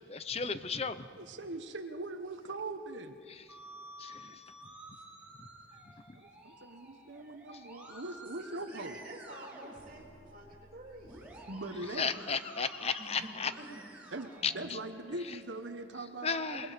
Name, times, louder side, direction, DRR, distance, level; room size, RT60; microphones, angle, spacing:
voice 1, 0.1-1.1 3.3-3.4 4.0-4.4 5.3-5.5 5.8-6.2 7.5-7.6 11.9-13.5 14.4-14.8 15.2-15.4 16.2-16.7, left 5 dB, 35° left, 12 dB, 0.8 m, -35 dB
voice 2, 1.2-3.2 6.1-9.0 11.5-12.1 14.1-16.7, right 2 dB, 80° right, 7 dB, 1.2 m, -41 dB
Musical instrument, 3.5-15.4, right 1 dB, 10° right, 3.8 m, -52 dB
voice 3, 8.4-11.4 13.0-14.1 14.4-14.6, right 1 dB, 45° right, 0 dB, 3.4 m, -50 dB
27.5 x 20.5 x 5.2 m, 2.2 s
head